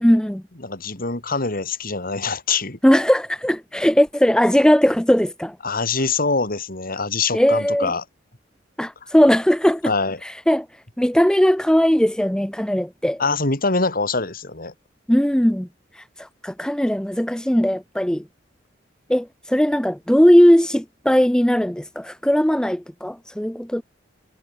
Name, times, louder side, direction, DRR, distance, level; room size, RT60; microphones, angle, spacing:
voice 1, 0.0-0.4 2.8-5.6 7.3-7.9 8.8-9.9 10.2-10.7 11.0-13.2 15.1-15.7 16.0-18.2 19.1-23.8, equal, 5° left, 0.7 m, -18 dB
voice 2, 0.6-2.8 5.6-8.0 9.9-10.2 13.2-14.7, left 4 dB, 50° left, 3.7 m, -24 dB
head